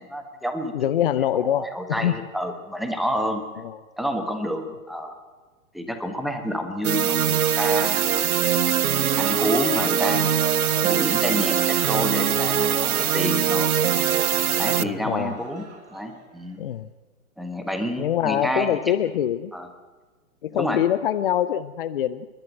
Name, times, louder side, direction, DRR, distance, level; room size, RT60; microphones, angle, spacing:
voice 1, 0.0-1.1 1.3-3.4 4.0-5.2 5.7-8.1 9.2-10.3 10.8-13.7 14.6-16.6 17.4-18.9 19.5-19.7 20.6-20.8, equal, ahead, 6 dB, 1.4 m, -29 dB
voice 2, 0.7-2.2 3.6-3.8 14.8-15.3 16.6-16.9 18.0-19.5 20.4-22.3, left 10 dB, 40° left, 12 dB, 0.7 m, -24 dB
sound 1, 6.8-14.8, right 9 dB, 80° right, 0.7 m, -22 dB
Crowd, 9.0-16.6, right 4 dB, 50° right, 3.6 m, -41 dB
29.0 x 12.0 x 7.8 m, 1.3 s
figure-of-eight pair, 130°, 43 cm